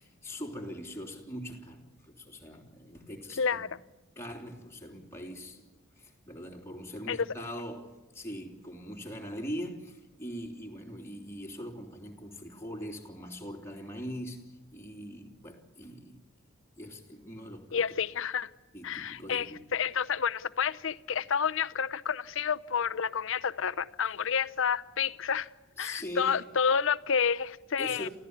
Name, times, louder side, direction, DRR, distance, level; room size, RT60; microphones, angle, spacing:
voice 1, 0.0-3.7 4.1-5.7 6.0-16.2 16.8-17.8 18.7-19.6 25.8-26.5 27.8-28.1, equal, 15° left, 3.4 m, -42 dB
voice 2, 3.4-3.8 7.1-7.2 17.7-18.5 18.8-25.5 25.8-28.1, left 7 dB, 70° left, 0.7 m, -30 dB
27.5 x 15.5 x 9.8 m
head